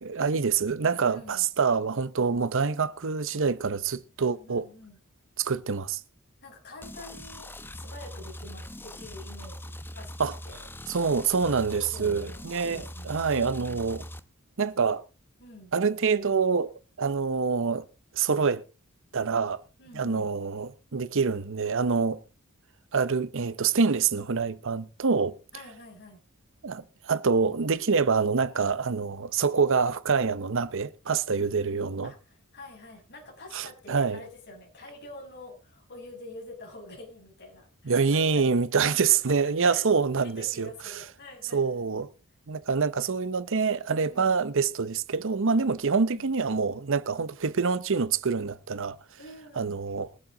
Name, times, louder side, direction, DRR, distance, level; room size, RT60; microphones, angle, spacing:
voice 1, 0.0-4.6 5.4-6.0 10.2-10.3 10.9-14.0 14.6-15.0 15.7-17.8 18.1-18.6 19.1-19.6 19.9-22.2 22.9-25.4 26.6-32.1 33.5-34.2 37.9-41.0 41.5-42.1 42.5-49.0 49.6-50.1, right 5 dB, 65° right, 0.8 m, -26 dB
voice 2, 1.0-1.4 4.2-5.0 6.4-10.7 11.7-13.8 15.4-15.7 19.8-20.3 25.5-26.2 31.4-39.1 39.6-41.9 44.0-44.4 45.8-46.3 49.2-49.8, left 2 dB, 50° left, 6.2 m, -47 dB
sound 1, 6.8-14.2, left 1 dB, 10° left, 0.9 m, -42 dB
22.5 x 7.7 x 3.8 m
head